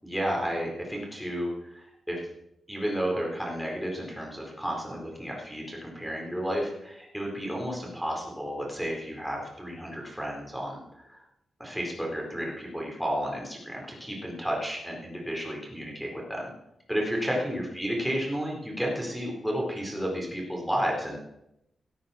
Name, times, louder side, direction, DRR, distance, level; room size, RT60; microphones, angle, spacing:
voice 1, 0.0-2.3 2.7-11.2 11.6-16.5 16.9-21.2, equal, ahead, -2 dB, 4.4 m, -32 dB
17.5 x 13.0 x 4.5 m, 0.82 s
wide cardioid pair, 165°, 0 cm